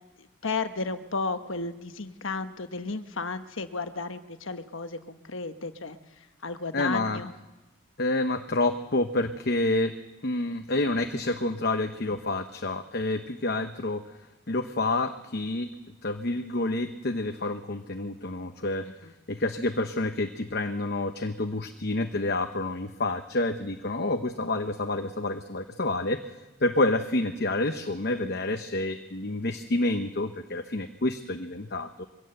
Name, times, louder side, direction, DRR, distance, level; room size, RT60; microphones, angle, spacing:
voice 1, 0.2-6.0 6.4-7.3 19.0-19.1, left 3 dB, 65° left, 9 dB, 1.2 m, -33 dB
voice 2, 6.7-7.2 8.0-9.9 10.2-14.2 14.5-15.7 16.0-18.9 19.3-26.2 26.6-32.0, left 2 dB, 50° left, 7 dB, 0.9 m, -28 dB
22.5 x 16.5 x 7.8 m, 1.1 s
head